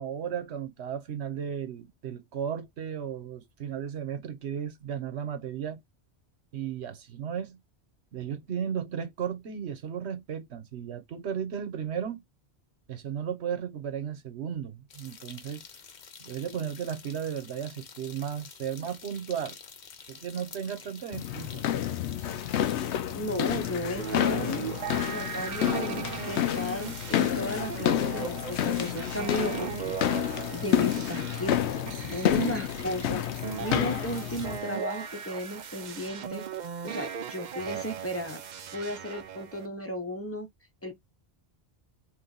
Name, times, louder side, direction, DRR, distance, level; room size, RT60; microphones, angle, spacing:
voice 1, 0.0-5.8 6.5-7.6 8.1-12.2 12.9-15.6 16.2-19.6 20.1-21.7, right 8 dB, 80° right, 1.1 m, -35 dB
sound 1, 14.9-34.6, left 6 dB, 50° left, 0.7 m, -49 dB
sound 2, 21.1-34.6, left 11 dB, 85° left, 0.9 m, -29 dB
voice 2, 23.1-24.6 25.1-31.8 32.1-33.2 33.6-36.4 36.8-38.4 38.7-40.5 40.8-41.0, equal, 15° left, 0.7 m, -35 dB
sound 3, 24.0-39.7, right 7 dB, 55° right, 0.6 m, -38 dB
3.1 x 3.1 x 3.9 m
omnidirectional pair, 1.1 m